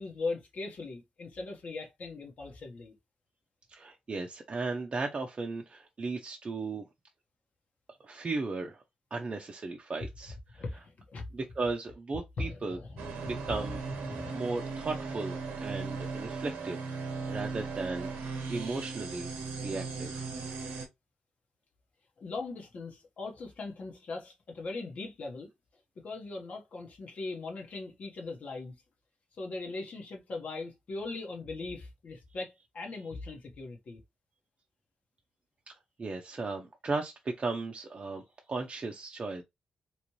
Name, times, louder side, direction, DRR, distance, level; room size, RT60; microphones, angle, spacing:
voice 1, 0.0-2.9 10.5-11.2 12.4-13.1 13.4-13.5 14.1-14.3 22.2-25.5 26.0-28.7 29.3-34.0, left 3 dB, 65° left, 1.1 m, -39 dB
voice 2, 3.7-6.8 8.0-8.8 9.1-10.6 11.3-12.8 13.2-13.8 14.3-19.3 19.6-20.3 36.0-39.4, right 3 dB, 45° right, 0.6 m, -36 dB
sound 1, 13.0-20.9, right 4 dB, 85° right, 0.9 m, -37 dB
3.1 x 2.6 x 3.0 m
supercardioid pair, 50°, 3 cm